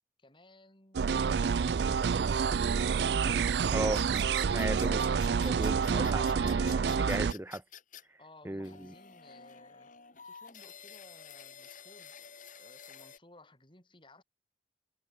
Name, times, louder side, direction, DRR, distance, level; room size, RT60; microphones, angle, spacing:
voice 1, 0.2-3.0 8.2-9.9 10.2-12.2 12.6-14.2, left 2 dB, 30° left, 4.6 m, -59 dB
sound 1, 0.9-7.3, right 6 dB, 65° right, 0.4 m, -28 dB
voice 2, 3.7-4.1 4.5-5.0 5.4-7.6 8.4-8.9, right 1 dB, 15° right, 0.7 m, -36 dB
sound 2, 3.9-8.0 8.6-13.2, left 7 dB, 45° left, 2.8 m, -50 dB
head